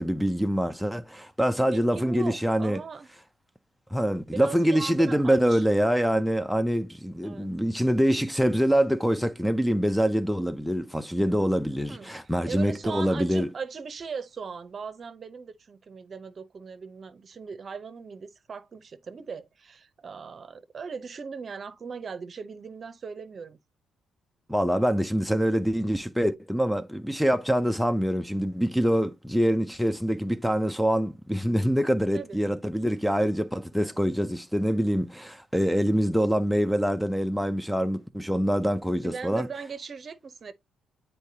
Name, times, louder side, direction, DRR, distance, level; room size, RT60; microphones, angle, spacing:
voice 1, 0.0-2.8 3.9-13.5 24.5-39.5, equal, ahead, 0.5 m, -25 dB
voice 2, 1.6-3.1 4.3-5.7 7.2-7.5 11.9-12.1 12.5-23.6 32.1-32.4 33.7-34.1 38.9-40.5, right 5 dB, 45° right, 0.7 m, -39 dB
8.2 x 4.4 x 2.8 m
cardioid pair, 90°, 0 cm